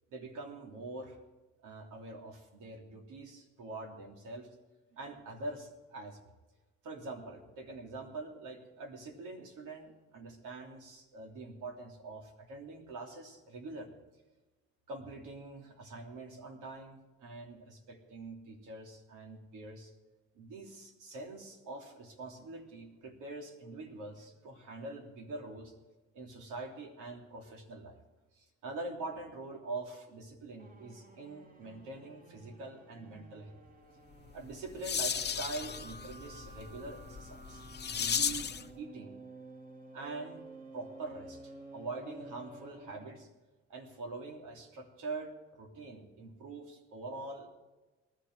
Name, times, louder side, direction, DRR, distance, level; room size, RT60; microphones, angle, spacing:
voice 1, 0.1-1.2 1.6-4.5 4.9-6.2 6.8-14.0 14.9-19.9 20.3-25.7 26.1-28.0 28.3-33.5 34.3-38.5 38.8-39.1 39.9-40.4 40.7-43.3 43.7-47.5, right 3 dB, 85° right, 2 dB, 3.2 m, -44 dB
sound 1, 30.6-43.3, right 2 dB, 30° right, 2.3 m, -52 dB
sound 2, 34.3-38.7, left 7 dB, 35° left, 0.9 m, -36 dB
20.0 x 13.0 x 4.8 m, 1.1 s
cardioid pair, 90°, 30 cm